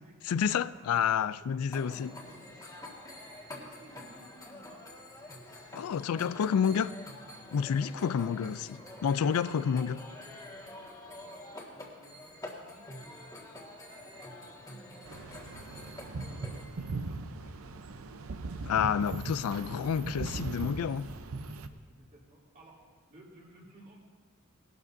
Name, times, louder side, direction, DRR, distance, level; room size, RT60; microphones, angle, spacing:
voice 1, 0.3-2.1 5.7-7.0 7.5-10.0 18.6-21.1, left 7 dB, 85° left, 0.4 m, -29 dB
sound 1, 1.7-16.6, left 1 dB, 15° left, 1.7 m, -47 dB
voice 2, 1.7-2.2 2.8-3.0 3.5-4.9 10.1-14.0 14.5-14.9 15.4-17.9 21.4-22.8 23.1-24.0, right 1 dB, 35° right, 2.9 m, -58 dB
sound 2, 15.0-21.7, right 3 dB, 75° right, 0.6 m, -39 dB
19.5 x 12.0 x 2.6 m
head